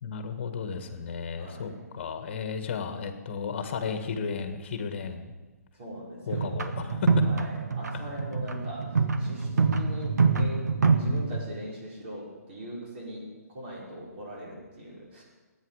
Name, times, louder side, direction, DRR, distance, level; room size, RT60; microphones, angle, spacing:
voice 1, 0.0-5.3 6.3-7.1, left 6 dB, 40° left, 8 dB, 1.5 m, -34 dB
voice 2, 1.4-1.8 5.8-6.5 7.2-15.2, equal, 40° right, -4 dB, 5.0 m, -41 dB
sound 1, 6.3-11.4, right 4 dB, 90° right, 1.4 m, -26 dB
22.5 x 9.2 x 4.9 m, 1.2 s
hypercardioid pair, 165°, 9 cm